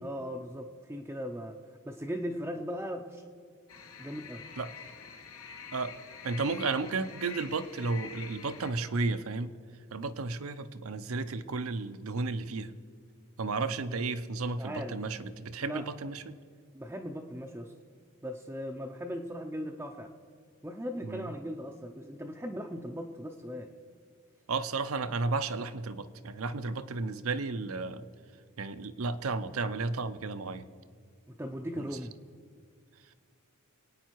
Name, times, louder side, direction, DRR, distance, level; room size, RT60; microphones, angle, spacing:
voice 1, 0.0-1.6 1.8-3.2 4.0-4.4 13.7-14.1 14.6-15.0 15.6-15.9 16.7-17.7 18.2-20.1 20.6-23.7 31.3-32.2, equal, 10° right, 1 dB, 0.5 m, -38 dB
sound 1, 3.7-8.7, left 6 dB, 80° left, 1.3 m, -46 dB
voice 2, 6.2-9.6 9.9-12.7 13.4-16.4 21.1-21.3 24.5-28.1 28.6-30.6 31.8-31.9, right 3 dB, 70° right, 12 dB, 0.7 m, -33 dB
25.0 x 9.2 x 4.6 m, 2.1 s
head